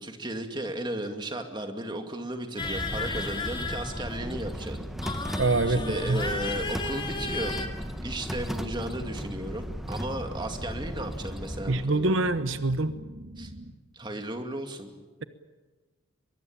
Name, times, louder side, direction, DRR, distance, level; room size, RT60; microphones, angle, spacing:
voice 1, 0.0-4.8 5.7-7.6 8.0-12.1 13.4-13.5 13.9-14.9, right 1 dB, 25° right, 5 dB, 2.4 m, -35 dB
sound 1, 2.6-4.4 5.0-7.7, left 3 dB, 25° left, 2.4 m, -34 dB
sound 2, 2.6-11.9, equal, ahead, 1.0 m, -36 dB
sound 3, 4.2-13.7, right 1 dB, 55° right, 1.8 m, -45 dB
voice 2, 5.4-6.2 11.7-13.0, right 2 dB, 80° right, 11 dB, 1.1 m, -25 dB
23.0 x 23.0 x 8.8 m, 1.2 s
head